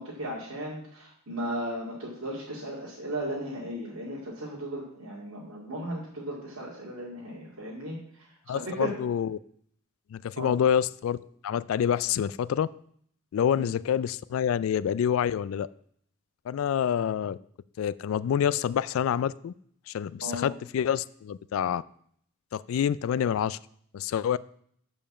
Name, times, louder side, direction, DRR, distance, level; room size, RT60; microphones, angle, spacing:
voice 1, 0.0-8.9 10.4-10.5 13.5-13.6 20.2-20.5, right 1 dB, 80° right, -7 dB, 2.3 m, -36 dB
voice 2, 8.5-9.4 10.1-11.2 11.4-12.7 13.3-15.7 16.5-17.4 17.8-19.5 19.9-21.8 22.5-23.6 23.9-24.4, left 8 dB, 75° left, 20 dB, 0.3 m, -27 dB
6.9 x 5.3 x 7.3 m, 0.64 s
head